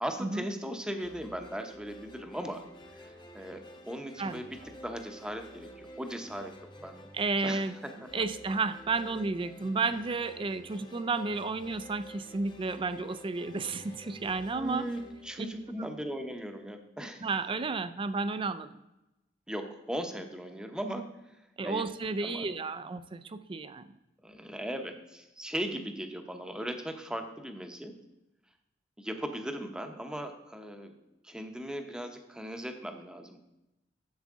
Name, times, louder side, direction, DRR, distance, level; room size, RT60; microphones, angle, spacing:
voice 1, 0.0-2.6 2.9-3.6 3.9-6.5 6.8-7.1 7.4-8.1 14.5-17.3 19.5-21.1 21.6-21.8 22.2-22.5 24.2-27.9 29.0-30.9 31.2-33.4, equal, 5° right, 5 dB, 0.8 m, -38 dB
sound 1, 1.0-16.2, equal, 25° left, 0.8 m, -51 dB
voice 2, 4.2-4.5 7.1-7.8 8.1-14.9 17.2-18.7 21.6-23.9, right 3 dB, 30° right, 13 dB, 0.4 m, -32 dB
10.5 x 7.3 x 3.6 m, 0.94 s
head